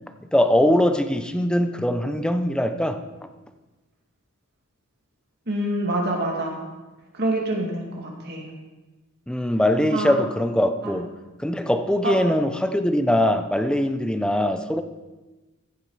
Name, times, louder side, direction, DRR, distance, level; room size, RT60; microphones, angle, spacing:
voice 1, 0.3-3.0 9.3-11.1 11.4-14.8, left 1 dB, 5° left, 8 dB, 0.6 m, -22 dB
voice 2, 5.5-6.6 7.1-8.4 9.9-10.1 10.8-10.9 12.0-12.1, right 1 dB, 50° right, -1 dB, 2.4 m, -26 dB
15.0 x 7.4 x 4.8 m, 1.2 s
head